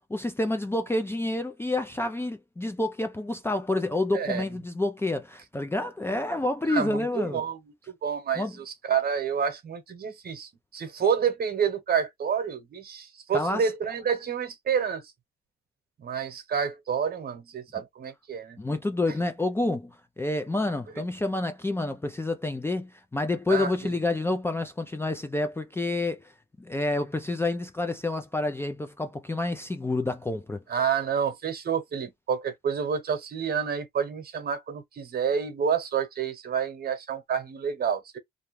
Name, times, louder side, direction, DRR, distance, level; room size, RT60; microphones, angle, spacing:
voice 1, 0.0-7.4 8.4-8.6 13.3-13.7 18.6-26.3 26.6-30.6, left 2 dB, 10° left, 0.4 m, -28 dB
voice 2, 6.7-7.6 7.9-15.0 16.0-18.6 23.5-23.7 30.7-38.2, right 7 dB, 50° right, 1.0 m, -29 dB
2.6 x 2.2 x 3.1 m
cardioid pair, 90°, 20 cm